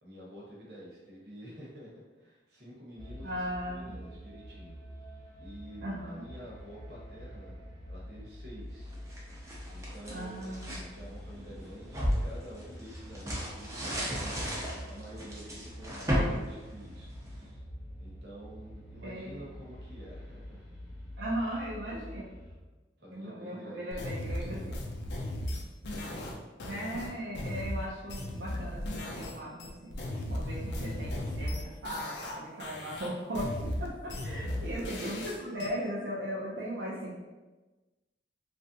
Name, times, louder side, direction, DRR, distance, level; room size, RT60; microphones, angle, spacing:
voice 1, 0.0-4.8 5.1-7.6 7.9-8.9 9.7-17.6 18.0-20.6 23.0-24.8 34.0-35.1, equal, 60° right, -5 dB, 1.0 m, -49 dB
sound 1, 3.0-22.6, equal, 25° left, 0.8 m, -47 dB
voice 2, 3.2-4.0 5.8-6.2 10.1-10.7 19.0-19.3 21.2-22.3 23.1-24.6 26.6-37.1, equal, 80° right, -7 dB, 0.6 m, -37 dB
sound 2, 8.9-10.9 11.4-17.4, equal, 15° right, 0.6 m, -34 dB
sound 3, 23.9-29.3 29.6-32.3 32.6-35.7, left 1 dB, 70° left, 0.5 m, -36 dB
3.2 x 2.5 x 2.7 m, 1.2 s
head